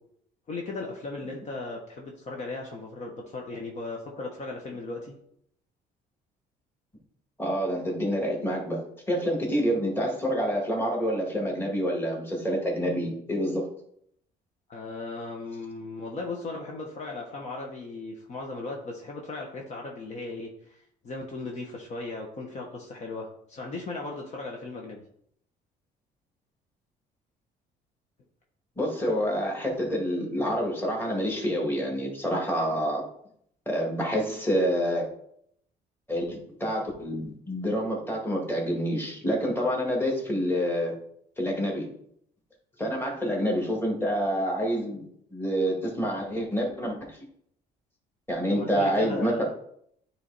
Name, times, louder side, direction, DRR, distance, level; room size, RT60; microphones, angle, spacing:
voice 1, 0.5-5.1 14.7-20.8 21.0-25.0 48.5-49.5, left 3 dB, 45° left, -1 dB, 1.1 m, -37 dB
voice 2, 7.4-8.8 9.1-13.7 28.8-33.0 33.7-35.1 36.1-40.9 41.4-41.9 42.8-47.0 48.3-49.5, equal, 15° left, -1 dB, 2.1 m, -27 dB
9.5 x 3.3 x 4.1 m, 0.70 s
cardioid pair, 110°, 17 cm